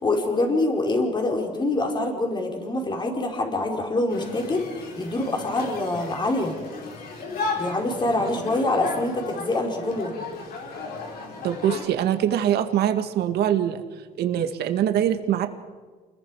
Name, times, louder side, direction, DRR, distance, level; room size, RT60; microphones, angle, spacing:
voice 1, 0.0-6.5 7.6-10.1, left 2 dB, 25° left, 2 dB, 4.8 m, -25 dB
sound 1, 4.1-11.9, left 4 dB, 65° left, 5.2 m, -34 dB
voice 2, 11.4-13.8 14.2-15.5, right 10 dB, 75° right, 7 dB, 2.0 m, -23 dB
29.5 x 21.5 x 4.9 m, 1.4 s
cardioid pair, 110°, 17 cm